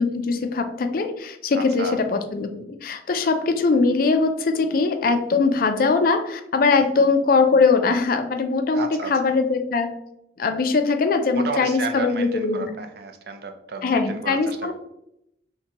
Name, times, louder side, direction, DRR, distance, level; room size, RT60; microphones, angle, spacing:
voice 1, 0.0-2.5 2.8-9.9 10.4-12.7 13.8-14.7, left 4 dB, 50° left, 7 dB, 0.4 m, -21 dB
voice 2, 1.5-2.0 6.8-6.9 8.7-9.1 11.3-14.7, right 4 dB, 55° right, 6 dB, 0.4 m, -32 dB
5.6 x 2.2 x 2.8 m, 0.81 s
head